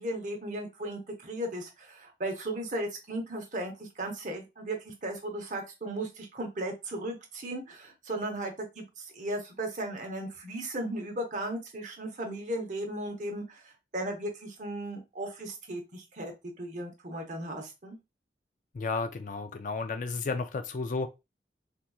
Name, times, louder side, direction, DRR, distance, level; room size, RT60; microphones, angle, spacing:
voice 1, 0.0-13.6 13.9-18.0, right 1 dB, 45° right, 0.9 m, -36 dB
voice 2, 18.7-21.1, left 4 dB, 45° left, 0.4 m, -32 dB
3.6 x 2.9 x 2.3 m
head